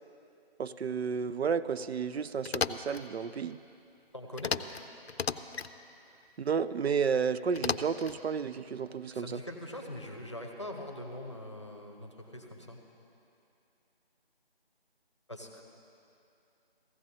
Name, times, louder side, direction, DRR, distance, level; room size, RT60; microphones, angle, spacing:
voice 1, 0.6-3.6 6.4-9.4, right 6 dB, 85° right, 13 dB, 0.5 m, -32 dB
sound 1, 2.4-3.0 4.4-4.8 5.1-5.7 7.5-8.2, left 6 dB, 80° left, 0.5 m, -33 dB
voice 2, 4.1-4.5 9.1-12.8 15.3-15.6, left 1 dB, 30° left, 1 dB, 0.7 m, -42 dB
15.5 x 15.0 x 2.8 m, 2.7 s
figure-of-eight pair, 175°, 31 cm